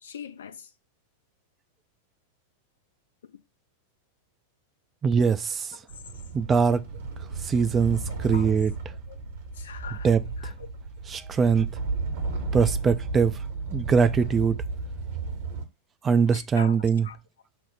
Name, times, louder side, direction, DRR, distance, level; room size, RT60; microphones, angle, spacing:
voice 1, 0.0-0.7 8.3-8.5 9.1-9.2 9.6-10.1 10.4-10.5 16.3-16.8 17.0-17.2, left 7 dB, 65° left, 0.5 m, -41 dB
voice 2, 5.0-5.8 6.3-6.8 7.4-8.7 10.0-10.2 11.1-11.7 12.5-13.4 13.7-14.6 16.0-17.1, right 6 dB, 20° right, 0.3 m, -22 dB
sound 1, 5.9-15.6, right 3 dB, 60° right, 1.0 m, -33 dB
6.1 x 2.0 x 3.9 m
figure-of-eight pair, 90°, 0 cm